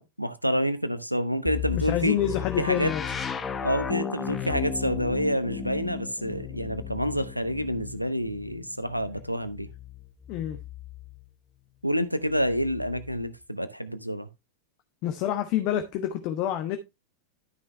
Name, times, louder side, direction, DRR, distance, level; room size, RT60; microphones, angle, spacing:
voice 1, 0.0-2.2 2.6-2.9 3.6-9.7 11.8-14.3, equal, 90° right, 0.9 m, -28 dB
sound 1, 1.5-11.3 12.3-13.3, left 8 dB, 20° left, 0.9 m, -36 dB
voice 2, 1.7-3.0 10.3-10.6 15.0-16.8, left 11 dB, 40° left, 1.1 m, -27 dB
12.5 x 6.0 x 3.2 m
figure-of-eight pair, 90°, 0 cm